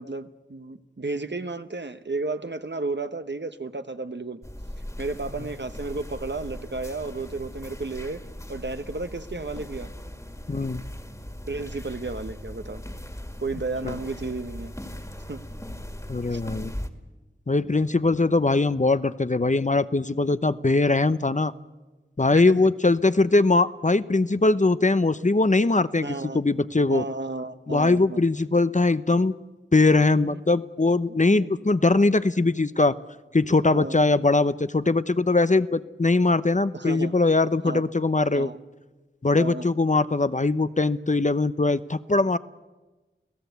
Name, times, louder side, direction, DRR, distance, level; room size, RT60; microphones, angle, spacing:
voice 1, 0.0-4.4 5.0-8.2 8.5-9.9 11.5-12.8 13.4-14.7 15.3-15.4 16.3-16.4 22.3-22.6 26.0-26.4 26.9-28.2 30.2-30.4 31.1-31.5 33.7-34.0 36.7-37.1 37.6-37.8 38.3-38.6 39.3-39.7, right 3 dB, 60° right, 9 dB, 1.2 m, -33 dB
sound 1, 4.4-16.9, left 1 dB, 15° left, 2.1 m, -39 dB
voice 2, 10.5-10.8 13.8-13.9 16.1-16.7 17.5-21.5 22.2-27.0 27.7-29.3 29.7-32.9 33.3-38.5 39.2-42.4, left 3 dB, 40° left, 14 dB, 0.7 m, -21 dB
29.5 x 17.0 x 8.2 m, 1.2 s
wide cardioid pair, 45°, 20 cm